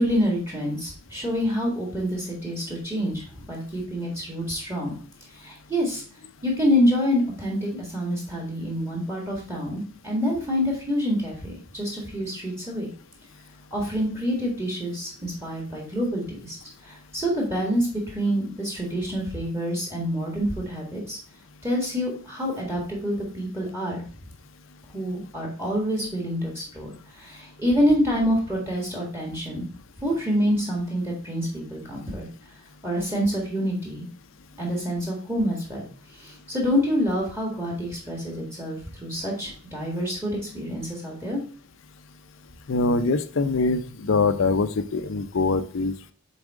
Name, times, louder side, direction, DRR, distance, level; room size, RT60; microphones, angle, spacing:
voice 1, 0.0-4.9 5.3-6.0 6.4-12.9 13.7-16.6 16.8-21.2 21.6-24.0 24.9-29.7 30.0-32.3 32.8-34.1 34.6-35.8 36.1-41.4, equal, 10° right, -2 dB, 1.7 m, -27 dB
voice 2, 42.7-46.1, left 3 dB, 70° left, 11 dB, 0.5 m, -23 dB
7.1 x 4.1 x 3.6 m, 0.42 s
head